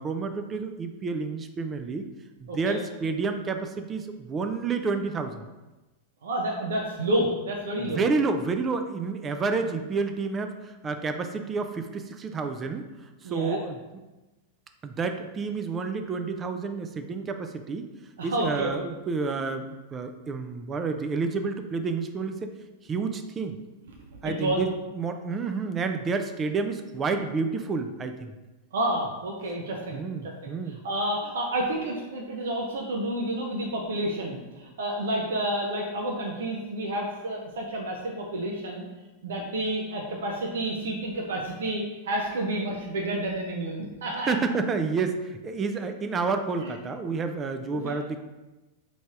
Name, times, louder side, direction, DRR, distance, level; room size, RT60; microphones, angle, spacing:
voice 1, 0.0-2.1 2.4-5.4 7.9-12.8 13.2-13.8 14.8-17.9 18.2-22.5 22.8-23.6 24.2-28.3 29.9-30.8 44.3-48.2, right 4 dB, 25° right, 7 dB, 0.4 m, -29 dB
voice 2, 6.2-8.1 13.2-13.6 18.2-18.7 24.2-24.6 28.7-30.5 30.8-38.8 39.2-44.3 46.6-46.7 47.7-48.0, right 1 dB, 75° right, -1 dB, 0.6 m, -30 dB
3.3 x 2.6 x 4.6 m, 1.1 s
hypercardioid pair, 105°, 0 cm